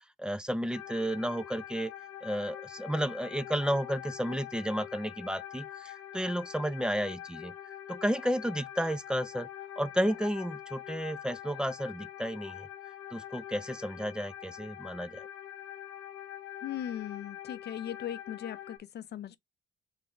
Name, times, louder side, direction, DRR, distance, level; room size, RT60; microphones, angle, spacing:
voice 1, 0.2-1.9 2.2-7.5 7.9-9.5 9.8-12.7 13.1-15.3, equal, 5° right, 0.5 m, -32 dB
sound 1, 0.7-18.8, left 11 dB, 85° left, 1.0 m, -44 dB
voice 2, 16.6-19.4, left 10 dB, 55° left, 0.6 m, -38 dB
4.1 x 3.9 x 3.4 m
cardioid pair, 90°, 20 cm